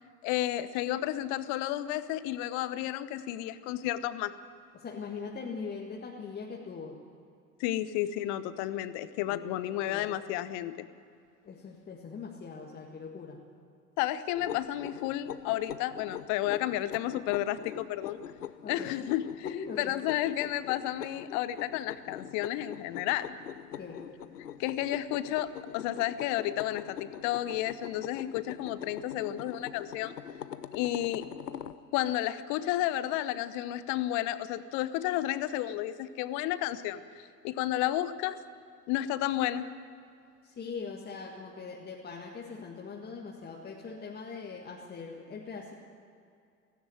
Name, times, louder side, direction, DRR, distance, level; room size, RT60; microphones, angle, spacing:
voice 1, 0.2-4.3 7.6-10.9 14.0-18.2 18.7-19.5 19.8-23.4 24.6-30.2 30.7-31.3 31.9-38.4 38.9-39.7, left 13 dB, 35° left, 15 dB, 1.0 m, -32 dB
voice 2, 4.7-7.0 9.2-10.2 11.4-13.4 18.6-18.9 19.4-20.0 23.8-24.1 40.4-45.7, left 5 dB, 20° left, -1 dB, 1.8 m, -41 dB
sound 1, 14.4-31.8, left 10 dB, 75° left, 0.9 m, -43 dB
17.0 x 16.5 x 9.4 m, 2.4 s
figure-of-eight pair, 85°, 48 cm